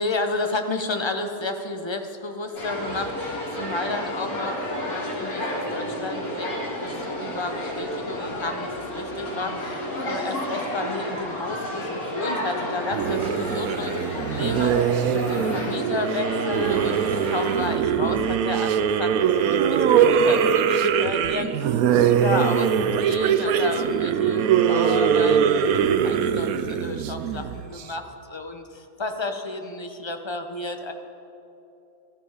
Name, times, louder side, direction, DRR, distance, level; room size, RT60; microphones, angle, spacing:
voice 1, 0.0-6.5 6.8-22.7 23.0-30.9, left 2 dB, 25° left, 6 dB, 0.7 m, -32 dB
sound 1, 2.5-17.6, left 1 dB, 75° left, 4.1 m, -31 dB
sound 2, 12.9-27.8, right 8 dB, 75° right, 1.1 m, -22 dB
16.0 x 13.5 x 5.0 m, 2.9 s
omnidirectional pair, 1.5 m